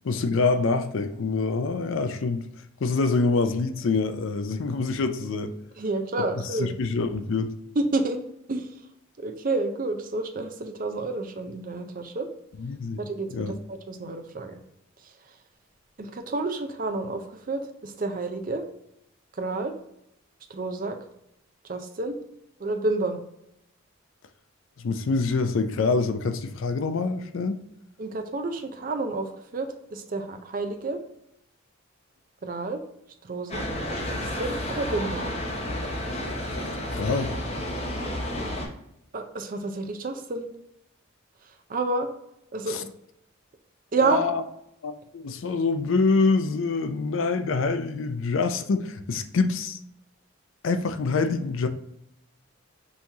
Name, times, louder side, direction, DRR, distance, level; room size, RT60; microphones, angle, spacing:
voice 1, 0.0-2.5 2.8-5.5 6.2-6.3 6.5-7.5 12.6-13.0 13.3-13.5 24.8-27.6 36.9-37.3 42.7-42.8 44.0-44.4 44.8-49.8 50.6-51.7, left 4 dB, 65° left, 0.4 m, -25 dB
voice 2, 5.8-6.7 7.8-8.2 8.5-8.7 9.2-12.3 13.0-14.6 16.0-18.7 19.4-19.8 20.5-21.0 21.7-22.2 22.6-23.2 28.0-31.0 32.4-32.8 33.2-33.7 34.1-35.3 39.1-40.5 41.7-42.1 42.5-42.9 43.9-44.3, right 3 dB, 40° right, 0.5 m, -29 dB
sound 1, 33.5-38.7, left 1 dB, 30° left, 0.8 m, -31 dB
5.5 x 3.0 x 2.7 m
head